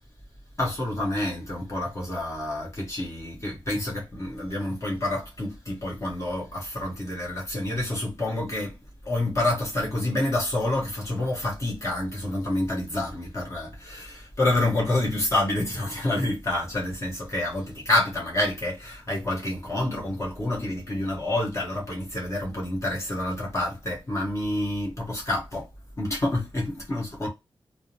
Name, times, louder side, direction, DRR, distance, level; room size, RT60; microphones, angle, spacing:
voice 1, 0.6-8.7 9.0-25.7 26.0-27.3, left 1 dB, 35° left, 1.2 m, -28 dB
3.3 x 2.1 x 2.7 m
wide cardioid pair, 100°, 9 cm